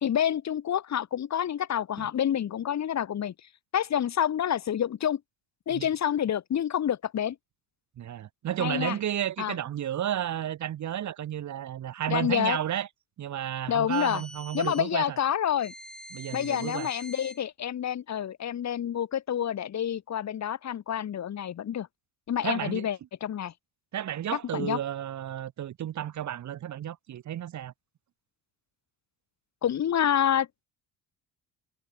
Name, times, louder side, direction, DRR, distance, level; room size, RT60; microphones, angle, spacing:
voice 1, 0.0-3.3 3.7-5.2 5.7-7.4 8.6-9.0 9.4-9.6 12.1-12.6 13.7-14.2 14.5-15.7 16.3-21.9 22.3-23.5 24.3-24.8 29.6-30.6, left 9 dB, 45° left, 2.1 m, -28 dB
voice 2, 8.0-12.9 13.2-15.2 16.1-16.9 22.4-22.9 23.9-27.7, right 11 dB, 50° right, 1.5 m, -32 dB
sound 1, 13.9-14.9 15.6-17.4, equal, ahead, 2.9 m, -45 dB
supercardioid pair, 95°, 38 cm